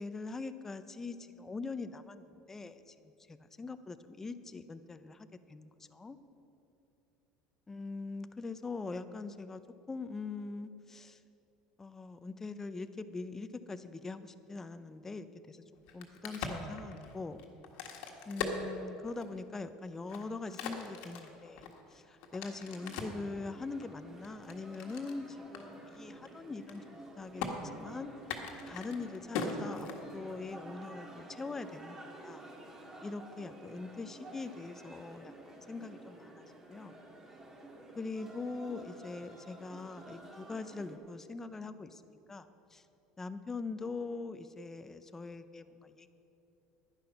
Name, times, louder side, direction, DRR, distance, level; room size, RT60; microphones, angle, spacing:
voice 1, 0.0-6.2 7.7-9.6 9.9-11.2 11.8-15.6 15.9-17.4 18.3-21.6 21.9-27.4 27.7-28.1 28.6-32.4 33.0-36.9 38.0-42.8 43.2-46.1, left 3 dB, 15° left, 11 dB, 0.6 m, -42 dB
Crack, 15.8-19.4 19.9-23.2 23.8-25.2 25.5-25.6 25.9-26.3 26.5-27.1 27.4-27.5 28.2-30.4, left 5 dB, 70° left, 1.5 m, -40 dB
sound 1, 22.7-41.0, right 1 dB, 20° right, 1.9 m, -51 dB
10.5 x 10.5 x 5.8 m, 2.9 s
supercardioid pair, 115°, 2 cm